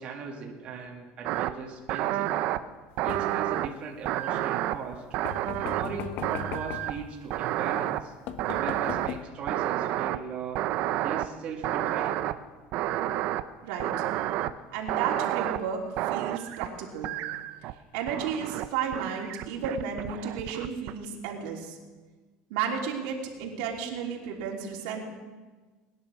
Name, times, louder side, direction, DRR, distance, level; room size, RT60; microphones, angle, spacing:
voice 1, 0.0-2.3 3.0-5.0 5.6-8.1 8.5-10.6 11.0-12.2, right 5 dB, 40° right, -2 dB, 2.5 m, -38 dB
sound 1, 1.2-1.5 1.9-2.6 3.0-3.7 4.1-5.9 6.2-7.1 7.3-8.0 8.4-9.1 9.5-10.2 10.5-11.3 11.6-12.3 12.7-13.4 13.8-14.5 14.9-15.6 16.0-16.7 17.0-17.7 18.1-18.7 18.9-20.9, right 14 dB, 55° right, 0.7 m, -30 dB
sound 2, 3.1-3.6 5.2-7.0 7.8-7.9 8.3-9.2, left 7 dB, 60° left, 1.1 m, -37 dB
voice 2, 14.7-17.2 17.9-21.8 22.5-25.0, right 7 dB, 80° right, -1 dB, 3.2 m, -33 dB
20.5 x 11.0 x 6.3 m, 1.3 s
cardioid pair, 145°, 3 cm